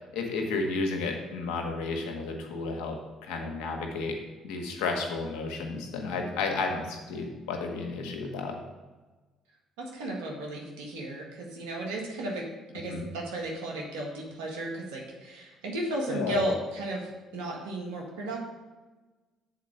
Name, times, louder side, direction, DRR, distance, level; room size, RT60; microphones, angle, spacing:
voice 1, 0.1-8.6 12.9-13.0 16.1-16.4, left 3 dB, 75° left, 3 dB, 1.3 m, -32 dB
voice 2, 9.8-12.5 12.7-18.4, right 1 dB, 85° right, -1 dB, 1.6 m, -34 dB
7.3 x 4.3 x 6.5 m, 1.2 s
hypercardioid pair, 60°, 0 cm